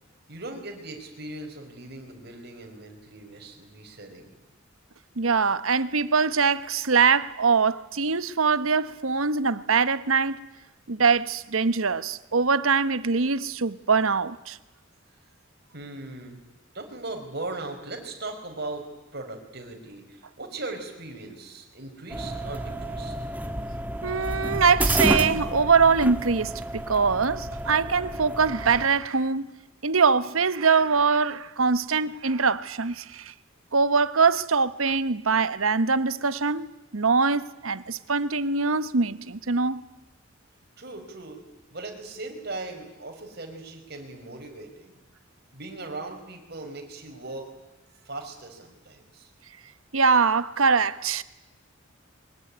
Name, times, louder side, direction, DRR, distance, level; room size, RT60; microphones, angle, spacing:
voice 1, 0.3-4.3 15.7-16.4 16.7-18.9 19.1-23.3 40.8-41.4 41.7-45.0 45.5-47.5 48.0-49.3, right 2 dB, 50° right, 5.2 m, -39 dB
voice 2, 5.2-10.5 10.9-14.6 24.0-29.5 29.8-33.3 33.7-39.8 49.9-51.2, right 5 dB, 85° right, 1.1 m, -23 dB
sound 1, 22.1-28.9, right 1 dB, 10° right, 1.5 m, -30 dB
23.5 x 20.5 x 9.8 m
head